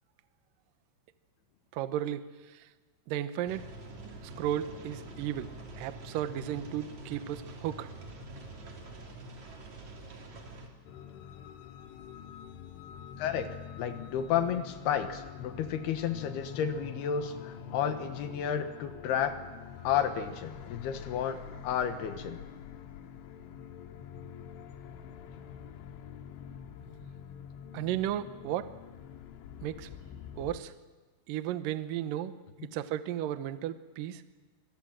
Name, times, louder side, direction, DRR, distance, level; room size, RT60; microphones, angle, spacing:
voice 1, 1.7-2.7 3.1-3.7 4.2-7.9 27.7-28.7 29.6-29.9 30.4-30.7 31.3-32.3 32.7-34.2, right 11 dB, 85° right, 11 dB, 1.9 m, -34 dB
sound 1, 3.5-10.7, right 2 dB, 40° right, 3.9 m, -46 dB
sound 2, 10.9-30.6, left 8 dB, 90° left, 3.6 m, -46 dB
voice 2, 13.2-13.5 13.8-19.4 19.8-22.4, left 8 dB, 70° left, 8 dB, 3.1 m, -32 dB
27.0 x 23.0 x 7.6 m, 1.3 s
omnidirectional pair, 5.4 m